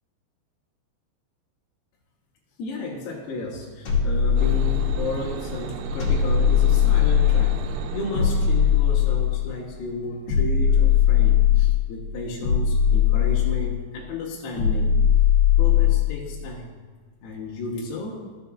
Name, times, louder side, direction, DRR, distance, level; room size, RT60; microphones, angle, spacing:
voice 1, 2.6-14.9 15.6-16.8 17.2-18.2, left 2 dB, 75° left, -4 dB, 2.7 m, -33 dB
sound 1, 3.8-5.2 6.0-7.6 8.1-9.5 10.3-11.9 12.4-13.8 14.6-16.2, left 9 dB, 45° left, 2.2 m, -19 dB
sound 2, 4.4-9.7, right 3 dB, 90° right, 2.9 m, -32 dB
14.0 x 6.7 x 2.3 m, 1.4 s
omnidirectional pair, 5.1 m